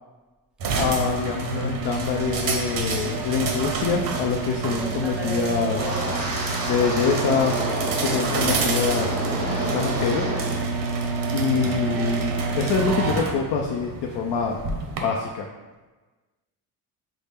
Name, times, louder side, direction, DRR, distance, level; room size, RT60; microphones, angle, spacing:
sound 1, 0.6-15.0, right 4 dB, 55° right, 0.7 m, -27 dB
voice 1, 0.8-5.9 6.7-7.7 8.0-9.2 9.7-10.3 11.3-14.6 15.0-15.5, left 5 dB, 75° left, 1 dB, 0.5 m, -25 dB
voice 2, 4.7-6.9, right 2 dB, 5° right, -2 dB, 0.3 m, -37 dB
Wind, 5.7-10.6 10.9-11.3 11.7-12.0, right 1 dB, 35° right, 1.5 m, -30 dB
5.4 x 2.1 x 3.4 m, 1.2 s
cardioid pair, 130°, 40 cm